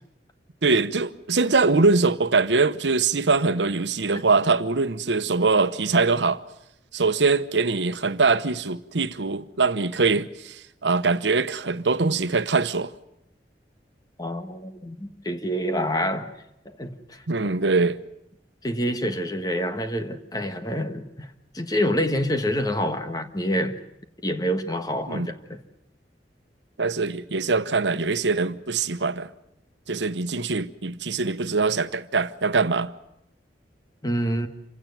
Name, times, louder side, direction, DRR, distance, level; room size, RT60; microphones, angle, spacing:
voice 1, 0.6-6.4 6.9-12.9 17.3-18.0 25.1-25.3 26.8-29.3 29.9-32.9, right 4 dB, 90° right, 1.0 m, -23 dB
voice 2, 14.2-16.3 16.6-17.5 18.6-23.8 24.2-25.6 34.0-34.5, equal, 20° left, 1.5 m, -27 dB
27.5 x 16.5 x 9.4 m
head